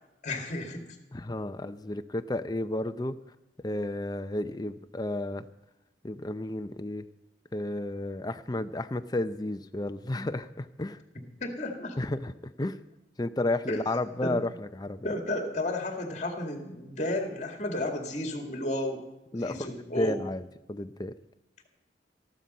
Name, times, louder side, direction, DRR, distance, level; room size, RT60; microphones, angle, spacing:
voice 1, 0.2-0.8 11.4-12.0 13.7-13.8 14.2-14.4 15.0-19.0 19.3-20.2, left 1 dB, 40° left, 3 dB, 2.2 m, -32 dB
voice 2, 1.1-3.2 3.6-5.4 6.0-7.1 7.5-11.0 12.0-12.3 12.6-12.8 13.2-15.1 19.3-21.1, left 1 dB, 25° left, 10 dB, 0.6 m, -32 dB
14.5 x 11.5 x 5.5 m, 1.0 s
head